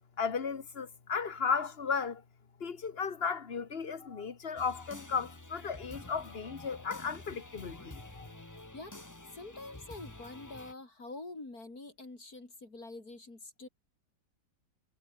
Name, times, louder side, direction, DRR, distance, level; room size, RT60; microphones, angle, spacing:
voice 1, 0.2-2.2 2.6-8.3, left 5 dB, 35° left, 1.7 m, -35 dB
sound 1, 4.6-10.7, left 2 dB, 10° left, 1.4 m, -49 dB
voice 2, 9.3-13.7, left 2 dB, 60° left, 5.3 m, -46 dB
omnidirectional pair, 1.8 m